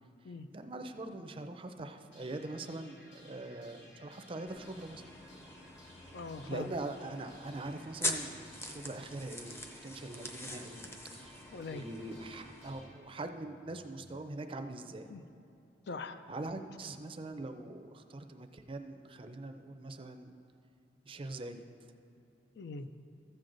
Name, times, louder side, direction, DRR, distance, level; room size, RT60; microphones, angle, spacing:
voice 1, 0.5-5.0 6.5-10.8 11.1-11.4 11.7-15.1 16.3-20.4 21.1-21.6, right 2 dB, 30° right, 7 dB, 0.5 m, -43 dB
sound 1, 2.1-14.1, equal, 85° left, 2.5 m, -57 dB
sound 2, 4.5-12.7, left 1 dB, 15° left, 0.6 m, -43 dB
voice 2, 6.1-6.7 11.5-11.8 15.1-15.2 15.9-16.2 16.6-16.7 22.6-22.9, left 3 dB, 65° left, 10 dB, 0.5 m, -42 dB
14.0 x 7.7 x 3.9 m, 2.8 s
head